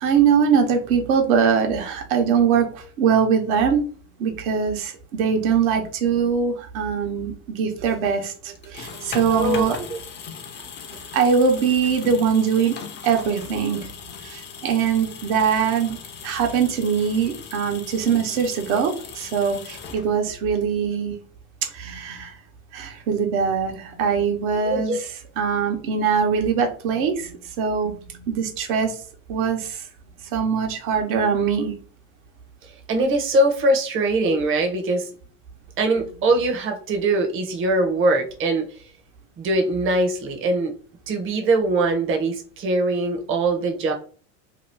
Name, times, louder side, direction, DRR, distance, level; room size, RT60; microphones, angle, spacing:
voice 1, 0.0-3.8 4.2-9.8 11.1-12.8 13.0-13.9 14.2-16.0 16.2-21.2 21.7-22.3 22.7-29.0 29.3-29.8 30.2-31.7, right 6 dB, 65° right, 3 dB, 1.0 m, -22 dB
sound 1, 8.6-20.5, left 6 dB, 25° left, 0.5 m, -39 dB
voice 2, 9.3-10.0 24.6-25.0 32.6-35.1 35.8-38.7 39.4-40.7 41.1-43.9, right 2 dB, 30° right, 3 dB, 0.8 m, -22 dB
2.9 x 2.3 x 3.3 m, 0.40 s
hypercardioid pair, 90°, 44 cm